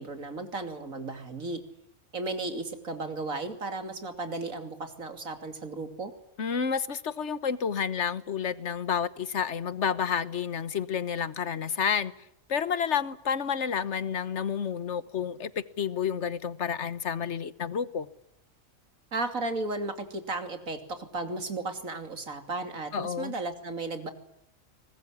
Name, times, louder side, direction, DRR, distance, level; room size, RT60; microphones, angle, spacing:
voice 1, 0.0-1.6 2.1-6.1 19.1-24.1, right 2 dB, 85° right, 3.3 m, -34 dB
voice 2, 6.4-12.1 12.5-18.1 22.9-23.3, left 7 dB, 60° left, 1.5 m, -30 dB
23.5 x 20.5 x 9.9 m
omnidirectional pair, 1.4 m